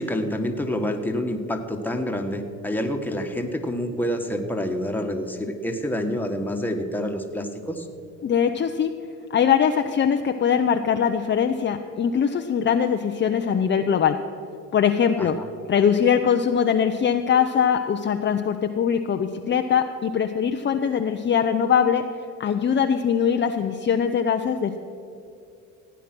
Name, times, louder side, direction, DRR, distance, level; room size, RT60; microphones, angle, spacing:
voice 1, 0.0-7.9 15.2-15.4, equal, 5° left, 3 dB, 1.6 m, -27 dB
voice 2, 8.2-8.9 9.3-14.2 14.7-15.4 15.7-22.0 22.4-24.8, left 7 dB, 35° left, 6 dB, 0.7 m, -22 dB
16.0 x 9.2 x 6.1 m, 2.5 s
supercardioid pair, 80°, 34 cm